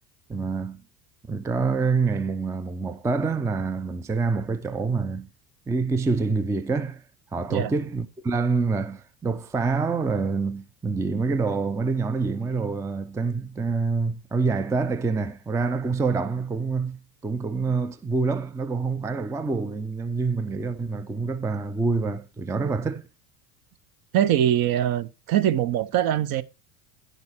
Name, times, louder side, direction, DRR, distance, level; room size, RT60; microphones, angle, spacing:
voice 1, 0.3-0.8 1.3-5.3 5.7-7.0 7.3-23.1, right 4 dB, 5° right, 0.4 m, -26 dB
voice 2, 24.1-26.4, right 11 dB, 50° right, 0.8 m, -22 dB
9.9 x 6.7 x 4.4 m
hypercardioid pair, 90°, 47 cm